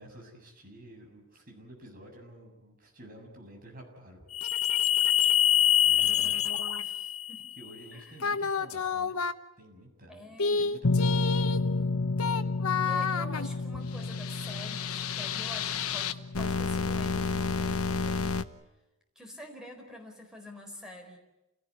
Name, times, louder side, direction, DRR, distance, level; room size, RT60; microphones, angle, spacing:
voice 1, 0.0-4.3 4.7-4.9 5.8-6.5 7.6-9.2 9.6-11.5, right 1 dB, 40° right, 2 dB, 7.3 m, -50 dB
sound 1, 4.3-7.6 8.2-9.3 10.4-18.4, left 6 dB, 75° left, 1.1 m, -27 dB
voice 2, 6.2-7.5 7.9-8.2 10.1-10.7 12.8-18.4 19.2-21.2, equal, 5° right, 2 dB, 4.4 m, -47 dB
28.5 x 18.0 x 9.6 m, 0.97 s
head